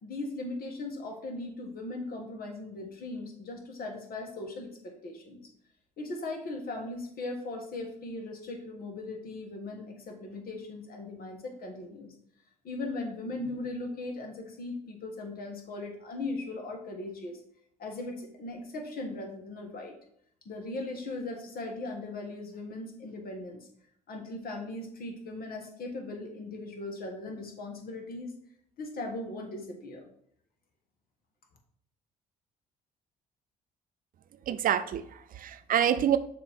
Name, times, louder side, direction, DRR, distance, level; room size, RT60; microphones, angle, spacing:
voice 1, 0.0-5.4 6.0-12.1 12.6-17.4 17.8-19.9 20.4-23.7 24.1-28.3 28.8-30.1, left 2 dB, 55° left, 2 dB, 1.7 m, -38 dB
voice 2, 34.5-36.2, right 9 dB, 50° right, 12 dB, 0.5 m, -27 dB
6.6 x 3.0 x 5.3 m, 0.67 s
hypercardioid pair, 60°, 18 cm